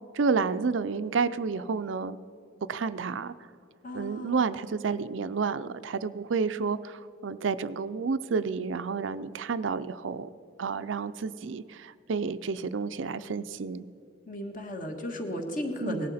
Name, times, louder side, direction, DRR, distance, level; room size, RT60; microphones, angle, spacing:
voice 1, 0.1-2.2 2.7-3.3 3.9-10.3 10.6-13.8 15.8-16.0, right 5 dB, 85° right, 13 dB, 0.5 m, -30 dB
voice 2, 3.8-4.5 14.3-16.1, left 1 dB, 45° left, 4 dB, 1.6 m, -35 dB
18.0 x 11.5 x 4.2 m, 2.7 s
head